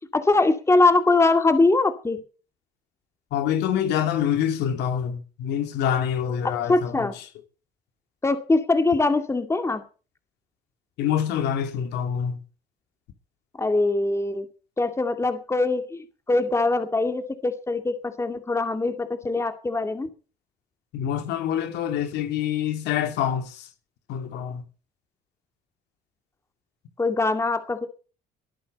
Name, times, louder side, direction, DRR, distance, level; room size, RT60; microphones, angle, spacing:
voice 1, 0.1-2.2 6.4-7.2 8.2-9.8 13.6-14.5 14.8-20.1 27.0-27.9, left 3 dB, 15° left, 2.2 m, -22 dB
voice 2, 3.3-7.2 11.0-12.4 20.9-23.7 24.1-24.6, left 9 dB, 85° left, 2.7 m, -26 dB
21.0 x 8.9 x 5.3 m
cardioid pair, 110°, 17 cm